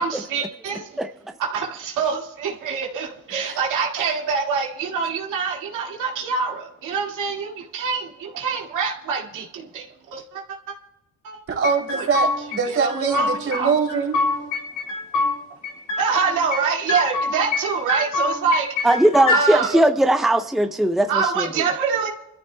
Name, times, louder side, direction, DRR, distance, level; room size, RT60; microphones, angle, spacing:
voice 1, 0.0-0.8 1.5-10.8 11.2-11.4 11.9-12.1 12.7-13.7 16.0-18.9 19.3-19.8 21.1-22.1, right 5 dB, 85° right, -1 dB, 2.1 m, -25 dB
voice 2, 11.5-14.2, right 5 dB, 50° right, 2 dB, 3.0 m, -23 dB
sound 1, 11.6-12.6 12.9-13.6 13.9-15.3 15.6-16.6 16.9-17.6 17.9-19.4, left 3 dB, 80° left, 5.1 m, -24 dB
voice 3, 18.8-21.5, right 1 dB, ahead, 6 dB, 0.6 m, -18 dB
26.5 x 14.0 x 2.2 m, 0.91 s
cardioid pair, 90°, 30 cm